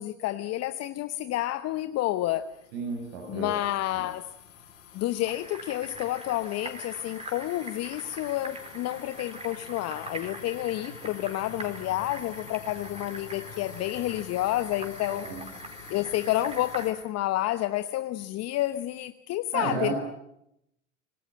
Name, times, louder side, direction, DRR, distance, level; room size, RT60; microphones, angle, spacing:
voice 1, 0.0-2.5 3.3-4.3 4.9-15.3 15.9-19.9, left 15 dB, 40° left, 1.0 m, -30 dB
sound 1, 1.7-16.9, left 6 dB, 75° left, 7.0 m, -47 dB
voice 2, 2.7-3.6 3.9-4.0 15.1-15.4 19.5-20.0, right 5 dB, 65° right, 5.9 m, -32 dB
sound 2, 5.2-16.9, right 3 dB, 15° right, 4.4 m, -44 dB
26.0 x 19.5 x 8.9 m
hypercardioid pair, 85°, 39 cm